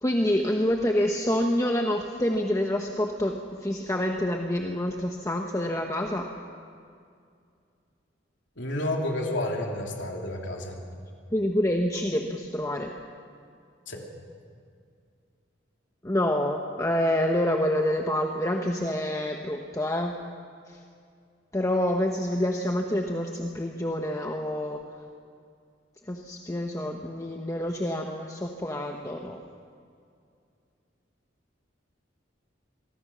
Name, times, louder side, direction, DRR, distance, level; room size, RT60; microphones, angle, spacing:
voice 1, 0.0-6.3 11.3-12.9 16.0-20.2 20.7-20.8 21.5-24.8 26.1-29.4, left 1 dB, 15° left, 2 dB, 1.0 m, -27 dB
voice 2, 8.6-10.7 13.9-14.0, left 1 dB, 85° left, 0 dB, 3.1 m, -30 dB
24.0 x 19.0 x 6.2 m, 2.3 s
head